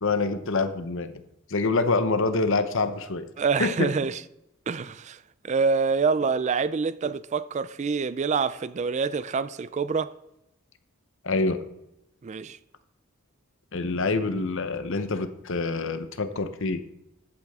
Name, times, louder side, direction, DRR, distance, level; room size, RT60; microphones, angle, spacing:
voice 1, 0.0-1.2 1.5-3.3 3.6-3.9 11.2-11.6 13.7-16.8, left 3 dB, 60° left, 0.8 m, -26 dB
voice 2, 3.4-4.2 4.7-5.2 5.4-10.1 12.2-12.6, right 5 dB, 30° right, 0.3 m, -26 dB
13.5 x 8.6 x 3.6 m
head